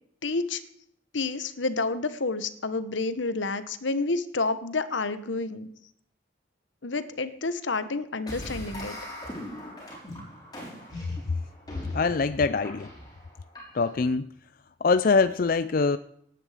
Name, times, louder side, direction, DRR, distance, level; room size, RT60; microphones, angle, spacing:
voice 1, 0.2-0.6 1.1-5.7 6.8-9.0, left 3 dB, 80° left, 13 dB, 1.1 m, -29 dB
sound 1, 8.3-14.1, left 1 dB, 20° left, 5.9 m, -40 dB
voice 2, 11.9-12.9 13.7-14.3 14.8-16.0, left 4 dB, 50° left, 14 dB, 0.4 m, -23 dB
18.0 x 9.9 x 5.0 m, 0.71 s
head